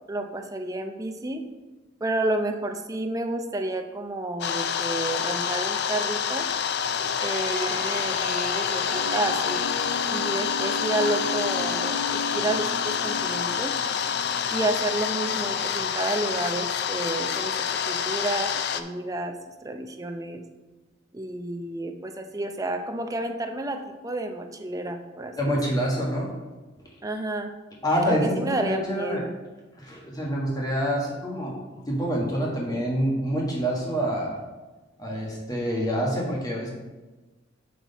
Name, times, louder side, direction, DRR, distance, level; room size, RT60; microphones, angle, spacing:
voice 1, 0.1-1.4 2.0-6.5 7.2-9.6 10.1-13.7 14.5-19.3 19.6-20.4 21.1-25.6 27.0-27.5 28.0-29.3, right 2 dB, 20° right, 5 dB, 0.6 m, -30 dB
sound 1, 4.4-18.8, left 7 dB, 60° left, 0.4 m, -27 dB
sound 2, 6.8-17.8, left 1 dB, 85° left, 1.8 m, -37 dB
voice 2, 25.4-26.3 27.8-29.2 29.8-31.5 31.9-34.4 35.0-36.7, equal, 20° left, -3 dB, 1.6 m, -26 dB
6.2 x 5.9 x 4.0 m, 1.2 s
head